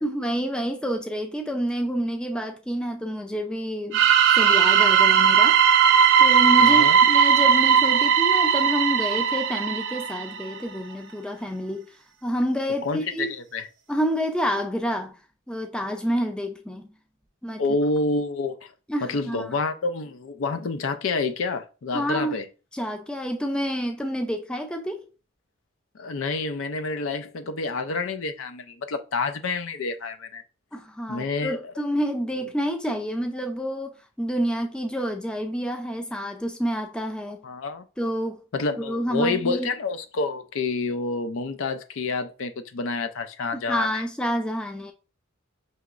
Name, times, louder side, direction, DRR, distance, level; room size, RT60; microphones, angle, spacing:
voice 1, 0.0-4.0 4.4-5.6 6.2-11.9 12.2-13.4 13.9-15.2 15.5-16.9 17.4-17.6 18.9-19.5 21.9-22.4 22.7-25.1 30.7-37.4 38.0-38.4 38.8-39.7 43.5-44.9, equal, 5° left, 0.4 m, -28 dB
sound 1, 3.9-10.6, right 7 dB, 55° right, 0.6 m, -18 dB
voice 2, 6.6-7.0 12.8-13.7 17.6-18.7 19.0-22.5 25.9-30.4 31.1-31.7 37.4-37.8 38.5-44.0, left 3 dB, 65° left, 0.5 m, -28 dB
5.6 x 2.9 x 2.4 m
head